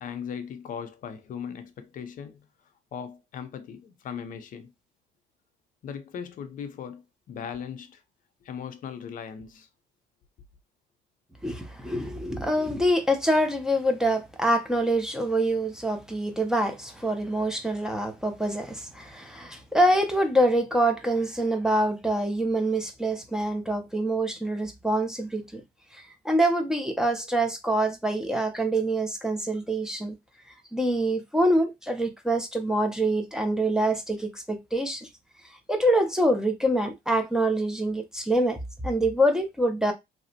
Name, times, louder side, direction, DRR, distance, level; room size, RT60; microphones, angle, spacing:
voice 1, 0.0-2.5 2.9-4.7 5.8-8.0 8.4-9.7, left 7 dB, 55° left, 0.5 m, -38 dB
voice 2, 11.4-25.6 25.9-30.1 30.7-35.1 35.7-39.9, right 1 dB, 5° right, 0.6 m, -25 dB
2.8 x 2.0 x 2.8 m
cardioid pair, 110°, 17 cm